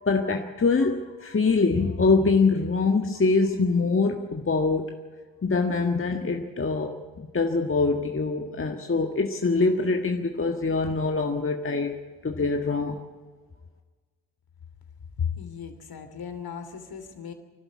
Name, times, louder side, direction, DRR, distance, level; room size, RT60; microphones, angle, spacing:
voice 1, 0.0-4.9 5.4-6.9 7.2-13.0, left 4 dB, 25° left, 3 dB, 1.7 m, -24 dB
voice 2, 15.2-17.3, left 7 dB, 50° left, 7 dB, 3.0 m, -34 dB
25.5 x 12.5 x 8.5 m, 1.4 s
hypercardioid pair, 45°, 48 cm